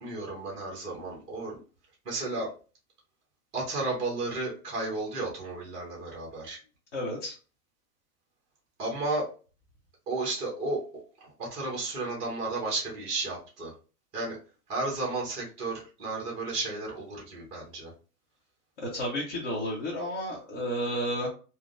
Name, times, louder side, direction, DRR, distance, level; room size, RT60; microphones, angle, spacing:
voice 1, 0.0-1.6 2.0-2.5 3.5-6.6 8.8-9.3 10.1-10.8 11.2-13.7 14.1-14.4 14.7-17.9, right 2 dB, 15° right, -3 dB, 0.8 m, -33 dB
voice 2, 6.9-7.4 18.8-21.3, equal, 35° left, -6 dB, 0.8 m, -32 dB
3.4 x 2.1 x 2.5 m, 0.35 s
hypercardioid pair, 150°, 46 cm